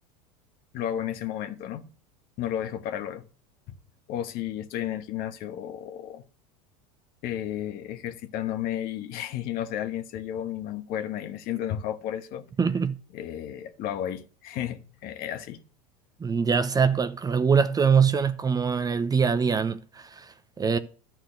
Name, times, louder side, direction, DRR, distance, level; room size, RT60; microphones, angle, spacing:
voice 1, 0.7-1.9 2.4-3.3 3.7-3.8 4.1-6.2 7.2-12.5 13.1-15.6, left 11 dB, 50° left, 1.2 m, -33 dB
voice 2, 12.6-13.0 16.2-20.3 20.6-20.8, right 6 dB, 20° right, 0.7 m, -23 dB
11.5 x 4.5 x 7.9 m
hypercardioid pair, 100°, 20 cm